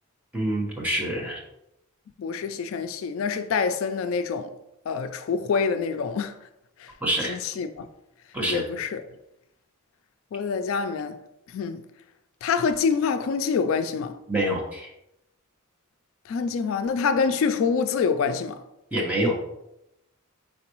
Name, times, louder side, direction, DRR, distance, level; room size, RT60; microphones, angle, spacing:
voice 1, 0.3-1.4 7.0-7.3 8.3-8.6 14.3-14.9 18.9-19.4, right 1 dB, 5° right, 0.9 m, -26 dB
voice 2, 2.2-4.5 4.9-6.5 6.8-6.9 7.2-7.9 8.5-9.0 10.3-11.2 11.5-11.8 12.4-14.2 16.3-18.6, left 5 dB, 65° left, 0.3 m, -26 dB
4.3 x 3.9 x 3.0 m
head